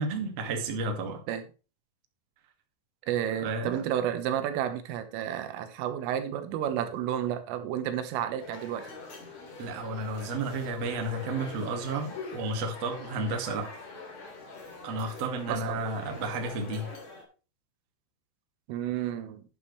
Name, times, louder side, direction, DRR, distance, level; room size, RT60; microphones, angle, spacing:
voice 1, 0.0-1.2 3.4-3.8 9.6-13.7 14.8-16.9, right 2 dB, 50° right, 3 dB, 2.1 m, -32 dB
voice 2, 3.1-8.9 13.2-13.3 15.5-15.8 18.7-19.4, right 10 dB, 85° right, 9 dB, 3.7 m, -31 dB
sound 1, 8.4-17.2, left 4 dB, 40° left, 3.7 m, -44 dB
11.5 x 11.0 x 3.2 m, 0.34 s
omnidirectional pair, 5.7 m